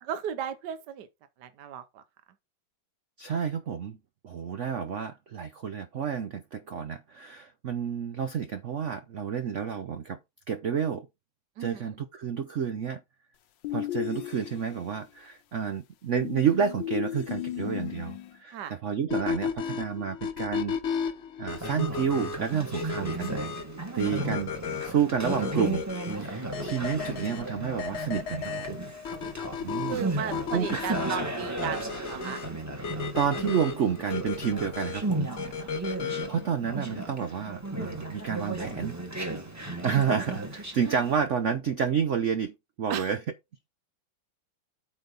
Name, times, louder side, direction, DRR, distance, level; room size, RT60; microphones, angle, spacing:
voice 1, 0.1-1.1 1.4-2.0 11.6-11.9 18.5-18.7 24.0-24.4 29.9-32.4 35.8-36.2 36.5-36.7 42.9-43.1, right 8 dB, 65° right, 1.3 m, -36 dB
voice 2, 3.2-4.0 4.2-10.2 10.5-11.1 11.6-13.0 13.7-20.8 21.4-23.3 23.9-24.5 24.8-25.8 26.2-28.8 29.6-30.8 33.1-35.3 36.3-38.9 39.8-42.5 42.8-43.2, right 7 dB, 85° right, 0.6 m, -30 dB
sound 1, 13.6-14.9 16.1-18.3, left 14 dB, 70° left, 1.4 m, -35 dB
sound 2, 19.1-36.5, left 7 dB, 45° left, 1.0 m, -35 dB
Conversation, 21.5-41.2, right 2 dB, 10° right, 1.4 m, -35 dB
8.7 x 4.0 x 5.2 m
omnidirectional pair, 2.2 m